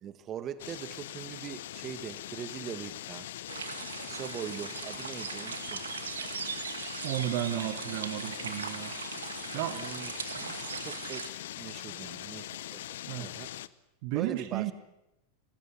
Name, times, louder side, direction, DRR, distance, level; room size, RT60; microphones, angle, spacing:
voice 1, 0.0-3.3 4.1-5.8 9.7-10.1 10.8-12.9 13.2-13.5 14.1-14.7, right 9 dB, 30° right, 14 dB, 1.6 m, -41 dB
sound 1, 0.6-13.7, left 13 dB, 55° left, 0.8 m, -42 dB
sound 2, 3.5-11.3, right 6 dB, 70° right, 2.0 m, -39 dB
voice 2, 7.0-8.9 9.5-9.8 10.3-10.6 13.1-13.3 14.0-14.7, right 14 dB, 45° right, 12 dB, 1.3 m, -33 dB
27.0 x 19.5 x 8.1 m, 0.92 s
figure-of-eight pair, 90°, 0 cm